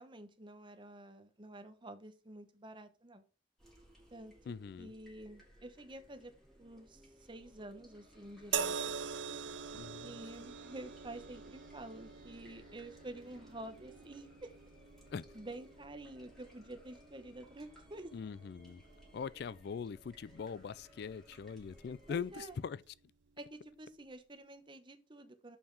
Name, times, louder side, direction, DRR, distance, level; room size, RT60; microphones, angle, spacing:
voice 1, 0.0-3.2 4.1-6.3 6.6-7.0 7.3-9.0 10.0-14.5 15.3-18.1 22.1-22.5 23.4-25.6, right 1 dB, 25° right, 1.1 m, -49 dB
sound 1, 3.6-22.6, equal, ahead, 3.3 m, -61 dB
voice 2, 4.5-4.9 9.7-10.2 15.1-15.2 18.1-18.8 19.1-22.8, left 6 dB, 65° left, 0.3 m, -42 dB
sound 2, 8.5-21.9 22.8-23.0, right 6 dB, 90° right, 0.5 m, -45 dB
7.0 x 5.6 x 4.7 m
head